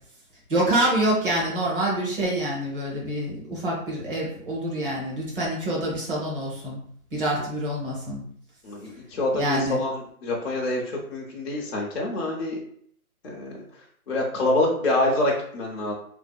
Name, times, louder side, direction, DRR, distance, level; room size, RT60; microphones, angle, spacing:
voice 1, 0.5-6.8 7.1-8.2 9.3-9.8, right 1 dB, 35° right, -4 dB, 0.9 m, -26 dB
voice 2, 8.6-12.6 13.2-13.6 14.1-15.9, left 1 dB, 45° left, -3 dB, 0.5 m, -26 dB
2.6 x 2.1 x 2.3 m, 0.63 s
hypercardioid pair, 155°, 44 cm